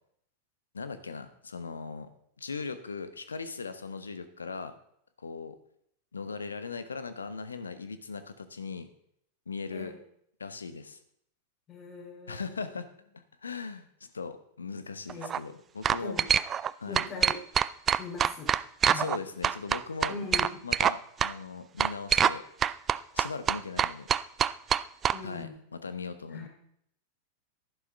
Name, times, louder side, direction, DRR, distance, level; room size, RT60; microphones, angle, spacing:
voice 1, 0.7-2.1 2.4-4.7 5.2-5.6 6.1-8.9 9.5-9.9 10.4-11.0 12.3-12.9 13.1-13.9 14.1-16.2 16.8-17.0 18.9-20.1 20.6-22.4 23.1-24.1 25.2-26.5, left 4 dB, 75° left, 11 dB, 0.9 m, -39 dB
voice 2, 11.7-12.7 15.1-15.4 16.0-16.3 16.8-17.4 18.0-18.5 18.8-19.1 20.1-20.6 25.1-25.6 26.3-26.5, left 3 dB, 30° left, 1 dB, 3.2 m, -41 dB
sound 1, 15.1-15.4 15.8-16.7 16.9-19.2 19.4-20.9 21.2-21.3 21.8-22.4 22.6-25.2, right 8 dB, 25° right, 0.3 m, -25 dB
11.5 x 11.0 x 3.5 m, 0.70 s
figure-of-eight pair, 90°, 0 cm